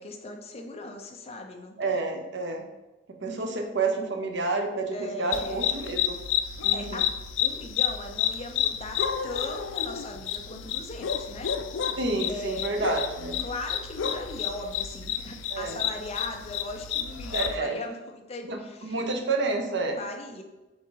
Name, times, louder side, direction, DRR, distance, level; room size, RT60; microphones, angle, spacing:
voice 1, 0.0-2.2 4.9-5.7 6.7-7.0 7.4-11.5 12.3-12.9 13.4-19.0 20.0-20.4, left 2 dB, 35° left, 3 dB, 0.8 m, -38 dB
voice 2, 1.8-2.6 3.1-6.2 6.6-7.0 12.0-13.4 15.5-15.8 17.3-17.8 18.5-20.0, right 3 dB, 65° right, 4 dB, 0.9 m, -29 dB
sound 1, 5.3-17.6, left 9 dB, 75° left, 0.4 m, -30 dB
7.0 x 3.8 x 3.9 m, 1.1 s
head